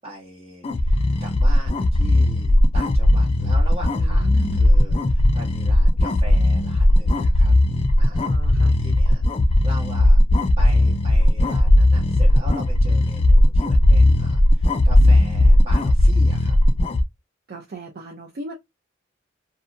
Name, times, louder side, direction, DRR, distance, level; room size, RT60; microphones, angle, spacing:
voice 1, 0.0-7.5 8.0-9.2 9.6-10.2 10.6-16.6, right 1 dB, 30° right, 1.3 m, -40 dB
sound 1, 0.6-17.0, left 1 dB, 30° left, 0.3 m, -17 dB
voice 2, 4.0-4.7 8.2-8.8 17.5-18.5, right 2 dB, 50° right, 0.5 m, -36 dB
2.6 x 2.3 x 2.5 m
head